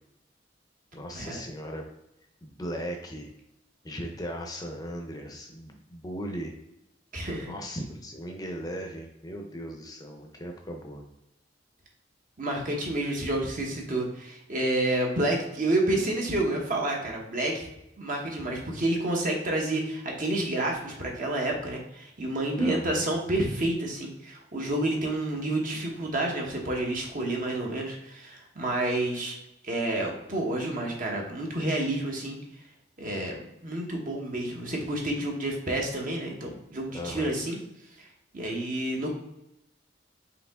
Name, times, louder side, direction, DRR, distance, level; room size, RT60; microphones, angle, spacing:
voice 1, 0.9-1.8 2.4-3.3 3.8-6.5 7.4-11.0 22.6-23.0 36.9-37.3, equal, 20° left, 3 dB, 0.6 m, -37 dB
voice 2, 7.1-7.5 12.4-17.7 18.0-29.4 29.6-32.4 33.0-33.4 33.6-37.6 38.0-38.1 38.3-39.2, right 1 dB, 45° right, 0 dB, 1.1 m, -29 dB
5.0 x 2.9 x 3.6 m, 0.86 s
head